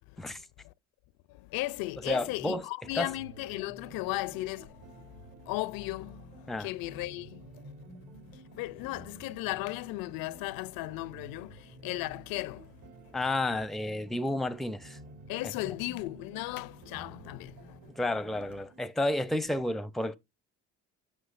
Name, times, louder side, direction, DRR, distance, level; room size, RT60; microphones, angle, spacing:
voice 1, 1.3-5.1 5.4-7.7 8.3-12.7 15.3-17.8, left 19 dB, 70° left, 0.5 m, -36 dB
voice 2, 2.1-2.6 3.0-3.1 6.5-6.7 13.1-15.0 18.0-20.1, left 1 dB, ahead, 0.6 m, -31 dB
sound 1, 2.8-18.8, right 3 dB, 55° right, 3.1 m, -52 dB
8.0 x 5.6 x 2.4 m
hypercardioid pair, 65°, 37 cm